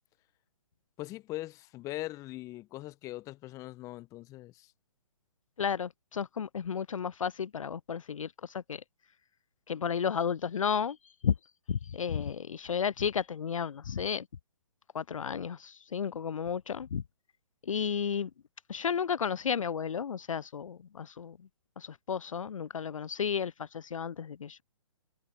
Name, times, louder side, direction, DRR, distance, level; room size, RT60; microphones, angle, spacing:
voice 1, 1.0-4.7, left 17 dB, 20° left, 0.8 m, -41 dB
voice 2, 5.6-8.8 9.7-11.0 11.2-11.3 11.7-14.3 14.9-17.0 17.6-18.3 18.7-21.4 21.8-24.6, left 7 dB, 70° left, 0.4 m, -33 dB
figure-of-eight pair, 130°, 17 cm